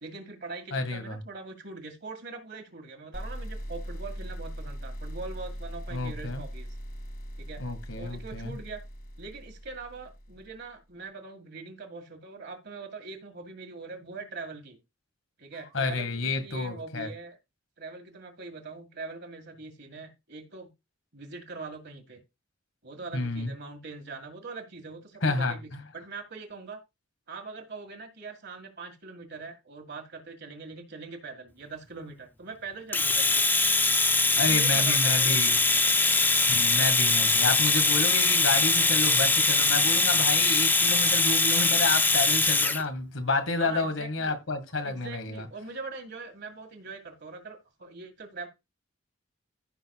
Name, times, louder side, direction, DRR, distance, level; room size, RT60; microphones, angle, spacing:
voice 1, 0.0-6.7 7.4-7.6 7.9-8.8 9.2-14.8 15.4-17.4 17.8-20.7 21.1-22.2 22.8-26.8 27.3-33.5 34.3-35.8 43.6-44.4 44.8-48.5, right 4 dB, 55° right, 1.9 m, -42 dB
voice 2, 0.7-1.2 5.9-6.4 7.6-8.5 15.7-17.1 23.1-23.5 25.2-25.8 34.4-35.6 36.5-45.4, left 3 dB, 80° left, 2.0 m, -29 dB
sound 1, 3.1-10.7, equal, 50° left, 2.0 m, -40 dB
Domestic sounds home sounds, 32.9-42.8, left 3 dB, 10° left, 0.5 m, -22 dB
15.0 x 6.2 x 2.4 m
head